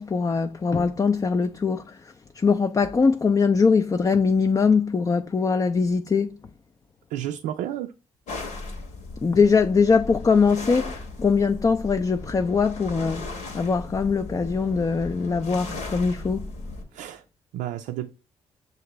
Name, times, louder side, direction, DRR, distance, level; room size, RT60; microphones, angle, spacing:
voice 1, 0.0-6.4 9.2-16.5, left 5 dB, 30° left, 0.4 m, -22 dB
voice 2, 7.1-7.9 16.9-17.2 17.5-18.1, right 12 dB, 85° right, 0.4 m, -31 dB
sound 1, 8.3-16.8, left 3 dB, 70° left, 1.2 m, -37 dB
6.5 x 2.6 x 3.0 m
supercardioid pair, 55°, 13 cm